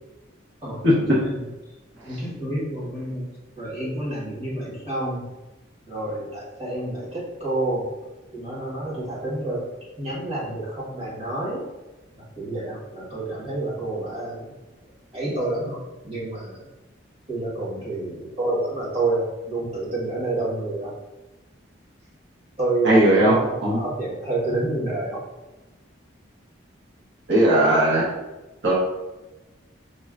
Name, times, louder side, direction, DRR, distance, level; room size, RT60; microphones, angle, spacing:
voice 1, 0.6-1.4 2.0-3.2 3.6-5.2 5.9-7.9 8.3-9.6 10.0-11.6 12.4-14.5 15.1-15.8 16.0-16.6 17.3-20.9 22.6-25.2, right 2 dB, 30° right, -8 dB, 1.1 m, -28 dB
voice 2, 22.8-23.4 23.6-23.8 27.3-28.1 28.6-28.7, right 1 dB, 75° right, -6 dB, 0.8 m, -17 dB
5.2 x 2.1 x 2.4 m, 1.1 s
head